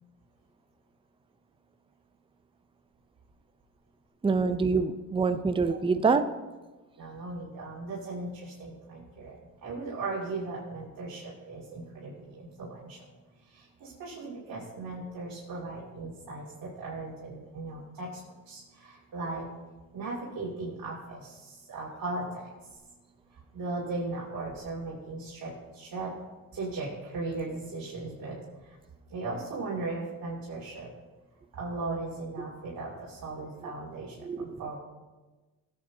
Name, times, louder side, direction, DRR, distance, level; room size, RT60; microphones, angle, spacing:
voice 1, 4.2-6.2 34.2-34.6, right 4 dB, 15° right, 9 dB, 0.5 m, -26 dB
voice 2, 7.0-9.3 9.6-13.0 13.5-18.1 18.5-19.4 19.9-22.5 23.5-26.1 26.5-28.4 28.6-28.8 29.1-30.9 31.5-34.8, right 3 dB, 75° right, -7 dB, 2.6 m, -37 dB
18.0 x 7.9 x 2.8 m, 1.2 s
cardioid pair, 95°, 34 cm